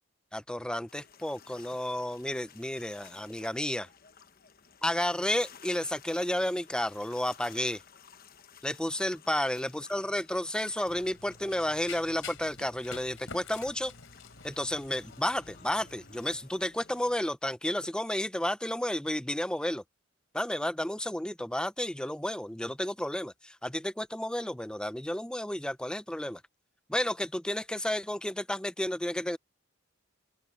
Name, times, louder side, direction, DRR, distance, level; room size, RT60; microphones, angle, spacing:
voice 1, 0.3-3.9 4.8-7.8 8.6-13.9 14.4-19.8 20.3-26.4 26.9-29.4, left 1 dB, 5° left, 0.5 m, -32 dB
seashore tunisia - motor boat, 0.9-17.2, left 7 dB, 45° left, 1.1 m, -56 dB
Run, 10.9-16.4, left 6 dB, 85° left, 3.6 m, -48 dB
head